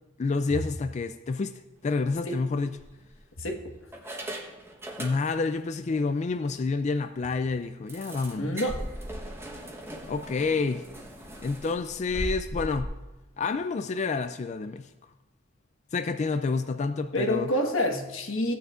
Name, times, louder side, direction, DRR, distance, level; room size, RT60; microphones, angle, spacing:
voice 1, 0.2-2.8 5.0-8.6 10.1-10.8 11.4-12.9 13.4-14.9 15.9-17.5, left 4 dB, 35° left, 0.3 m, -29 dB
sound 1, 1.9-2.1 2.8-3.4 3.9-5.6 5.9-6.0 6.4-6.5 6.9-7.0 7.9-12.8, equal, 10° right, 1.1 m, -39 dB
voice 2, 8.4-8.9 17.1-18.5, left 1 dB, 90° left, 1.4 m, -27 dB
16.5 x 9.3 x 2.5 m
head